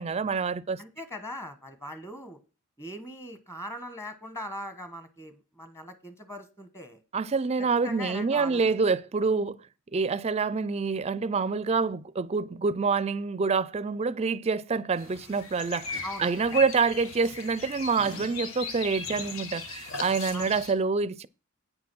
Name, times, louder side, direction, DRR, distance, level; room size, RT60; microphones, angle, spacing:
voice 1, 0.0-0.8 7.1-9.6 9.9-21.3, right 4 dB, 30° right, 0.4 m, -27 dB
voice 2, 0.8-2.4 2.8-7.0 7.6-8.6 16.0-16.7 20.3-20.6, equal, 15° left, 1.2 m, -40 dB
sound 1, 15.0-20.7, left 4 dB, 80° left, 1.7 m, -38 dB
9.1 x 6.0 x 6.1 m
head